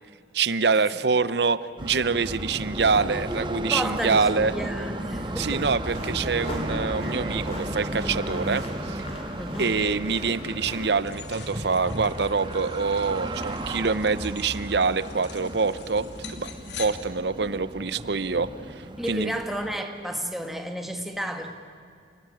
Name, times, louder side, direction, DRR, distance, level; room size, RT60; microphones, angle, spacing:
voice 1, 0.3-4.5 5.4-9.0 9.6-16.5 16.8-18.5 19.1-19.4, right 4 dB, 60° right, 15 dB, 0.8 m, -25 dB
sound 1, 1.8-19.8, right 1 dB, 25° right, 1.6 m, -34 dB
voice 2, 3.7-5.7 9.4-9.7 19.0-21.5, equal, ahead, 4 dB, 1.9 m, -32 dB
sound 2, 5.9-11.0, left 1 dB, 35° left, 4.8 m, -39 dB
sound 3, 11.0-16.9, left 6 dB, 70° left, 2.6 m, -44 dB
29.5 x 19.5 x 10.0 m, 2.3 s
head